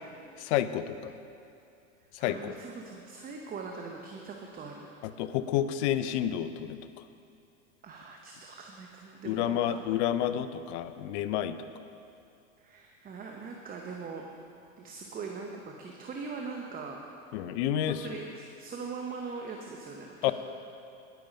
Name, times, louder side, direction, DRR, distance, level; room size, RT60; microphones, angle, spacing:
voice 1, 0.4-1.1 2.1-2.5 5.0-6.8 9.2-11.6 17.3-18.0 20.2-20.3, left 11 dB, 60° left, 12 dB, 0.7 m, -29 dB
voice 2, 2.2-4.9 7.8-10.2 12.6-14.2 14.8-20.3, right 4 dB, 20° right, 1 dB, 0.9 m, -41 dB
10.5 x 9.1 x 5.2 m, 2.6 s
hypercardioid pair, 110°, 39 cm